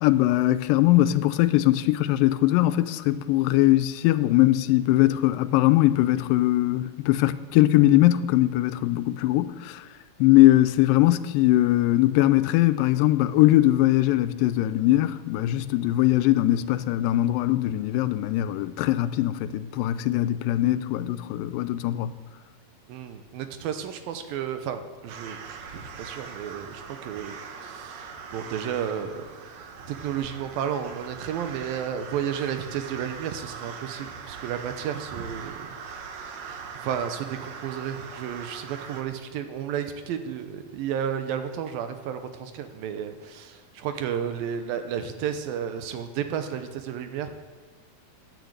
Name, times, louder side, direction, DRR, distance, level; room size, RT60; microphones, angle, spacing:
voice 1, 0.0-9.8 10.2-22.1, left 15 dB, 80° left, 2.2 m, -21 dB
voice 2, 22.9-27.3 27.6-29.3 29.9-35.8 36.4-47.3, right 8 dB, 85° right, 2.7 m, -32 dB
sound 1, 25.1-39.0, right 6 dB, 65° right, 1.9 m, -41 dB
9.9 x 9.4 x 8.0 m
omnidirectional pair, 4.1 m